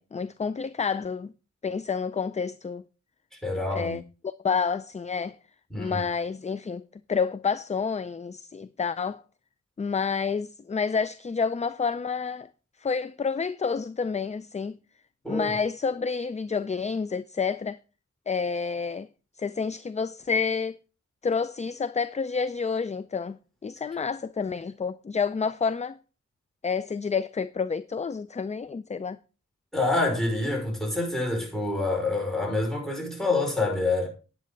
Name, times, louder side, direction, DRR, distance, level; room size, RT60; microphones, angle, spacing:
voice 1, 0.0-1.3 1.6-2.8 3.7-5.4 5.8-6.8 7.1-9.2 9.8-12.5 12.8-14.8 15.3-17.8 18.3-19.1 19.4-20.8 21.2-26.0 26.6-29.2, left 5 dB, 25° left, 0.4 m, -29 dB
voice 2, 3.4-4.0 5.7-6.1 15.2-15.5 29.7-34.1, left 2 dB, ahead, 5.2 m, -27 dB
9.5 x 8.3 x 3.9 m
wide cardioid pair, 80°, 29 cm